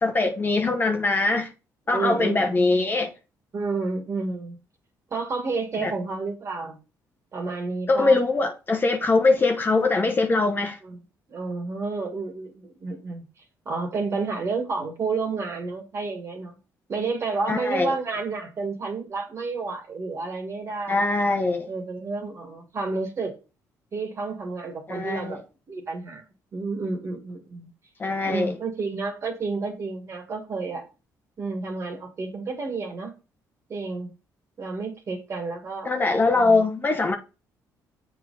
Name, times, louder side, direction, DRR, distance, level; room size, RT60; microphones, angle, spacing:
voice 1, 0.0-1.5 1.9-3.1 5.8-5.9 7.9-10.8 17.5-17.9 20.9-21.7 24.9-25.4 28.0-28.6 35.8-37.2, left 3 dB, 30° left, 0.9 m, -22 dB
voice 2, 1.9-2.7 3.5-4.6 5.1-6.8 7.3-8.2 10.8-11.0 11.3-13.3 13.7-16.6 16.9-21.0 21.7-23.3 23.9-25.4 25.7-26.2 26.5-27.7 28.3-30.8 31.4-33.1 33.7-34.1 34.6-35.9 36.3-36.7, right 4 dB, 40° right, 1.8 m, -30 dB
7.5 x 3.7 x 4.1 m
cardioid pair, 110°, 7 cm